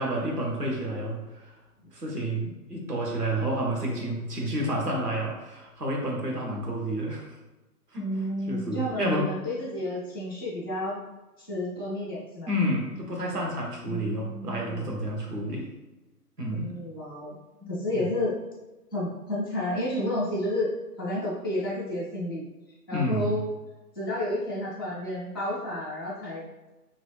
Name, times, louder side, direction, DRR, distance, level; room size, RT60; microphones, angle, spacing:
voice 1, 0.0-1.5 1.9-7.2 7.9-8.1 8.5-9.3 12.5-15.7 16.4-16.7 17.6-18.1 22.9-23.4, right 1 dB, 75° right, -2 dB, 1.4 m, -30 dB
voice 2, 7.9-11.0 11.4-12.5 13.9-14.8 16.5-17.4 17.7-18.4 18.9-22.4 22.9-23.5 23.9-26.5, left 1 dB, 15° left, -9 dB, 0.5 m, -31 dB
3.1 x 3.0 x 3.2 m, 1.1 s
figure-of-eight pair, 135°, 48 cm